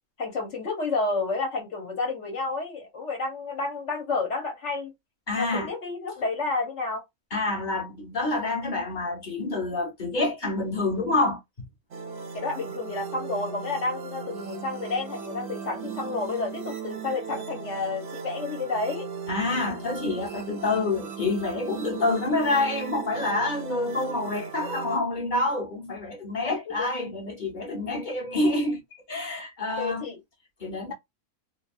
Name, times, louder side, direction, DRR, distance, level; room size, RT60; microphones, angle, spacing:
voice 1, 0.2-4.9 5.4-7.0 12.3-19.1 26.4-26.9 29.8-30.2, left 3 dB, 55° left, 1.4 m, -30 dB
voice 2, 5.3-5.7 7.3-11.7 19.3-28.8 29.1-30.0 30.6-30.9, left 2 dB, 35° left, 1.2 m, -27 dB
sound 1, 11.9-25.0, right 6 dB, 60° right, 0.7 m, -37 dB
3.0 x 2.7 x 2.5 m
omnidirectional pair, 1.6 m